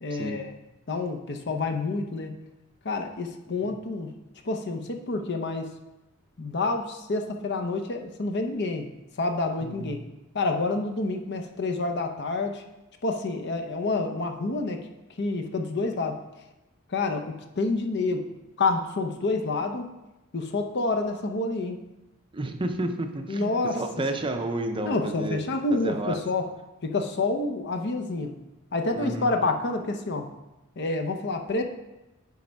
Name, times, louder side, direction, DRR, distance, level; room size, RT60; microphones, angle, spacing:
voice 1, 0.0-0.5 0.9-2.3 2.8-4.1 4.4-5.7 6.4-8.9 9.2-10.0 10.3-12.6 13.0-14.8 15.2-16.2 16.9-18.2 18.6-19.9 20.3-21.8 23.3-23.8 24.9-26.5 26.8-28.3 28.7-30.3 30.8-31.6, left 3 dB, 55° left, 4 dB, 0.7 m, -28 dB
voice 2, 9.6-10.1 22.3-25.4 25.7-26.2 28.9-29.3, right 1 dB, 25° right, 5 dB, 0.5 m, -31 dB
9.5 x 3.5 x 5.3 m, 0.99 s
head